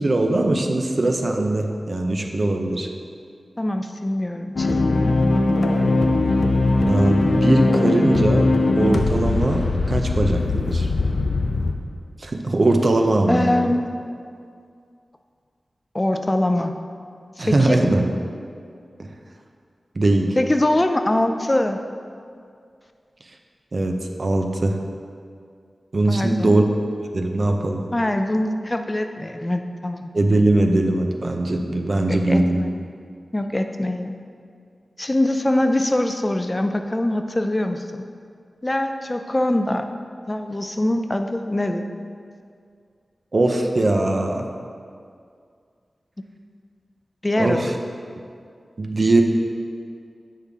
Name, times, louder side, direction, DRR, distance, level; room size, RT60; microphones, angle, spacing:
voice 1, 0.0-2.9 6.9-10.9 12.2-13.7 17.4-18.1 19.0-19.1 19.9-20.4 23.7-23.9 24.2-24.8 25.9-26.7 27.1-27.9 30.1-32.6 43.3-44.5 47.4-47.7 48.8-49.2, right 2 dB, 55° right, 3 dB, 0.6 m, -20 dB
voice 2, 3.6-5.1 13.3-14.0 15.9-16.7 17.4-17.8 20.4-21.8 26.1-26.6 27.9-30.1 32.1-32.7 33.3-34.2 35.0-38.1 38.6-39.8 40.3-41.8 47.2-47.7, left 1 dB, 25° left, 6 dB, 0.4 m, -23 dB
sound 1, 4.6-11.7, left 2 dB, 80° left, 0.5 m, -20 dB
8.3 x 5.5 x 3.5 m, 2.3 s
wide cardioid pair, 85°, 0 cm